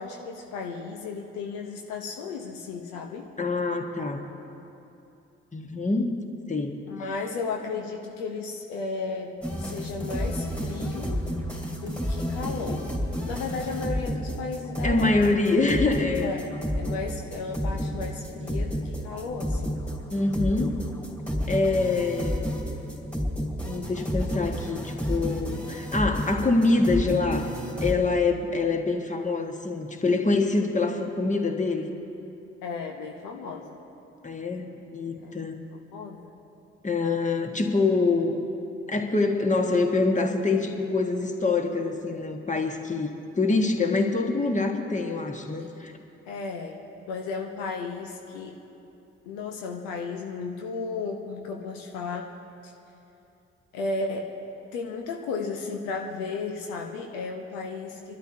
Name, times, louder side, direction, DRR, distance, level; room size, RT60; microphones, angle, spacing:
voice 1, 0.0-3.3 6.9-11.3 11.7-12.9 13.2-15.3 16.2-19.8 32.6-33.8 35.2-35.3 35.7-36.3 46.3-46.8 47.1-48.6 49.2-52.3 52.6-52.7 53.7-54.3 54.7-58.2, left 4 dB, 70° left, 2 dB, 1.0 m, -34 dB
voice 2, 3.4-4.2 5.5-6.1 6.5-6.7 14.8-16.3 20.1-20.7 21.5-22.5 23.7-27.5 27.8-31.9 34.2-35.6 36.8-38.4 38.9-43.1 43.3-45.9, left 3 dB, 20° left, 4 dB, 1.6 m, -25 dB
sound 1, 9.4-27.9, equal, 5° left, 3.0 m, -31 dB
28.0 x 12.5 x 2.8 m, 2.8 s
figure-of-eight pair, 40°, 34 cm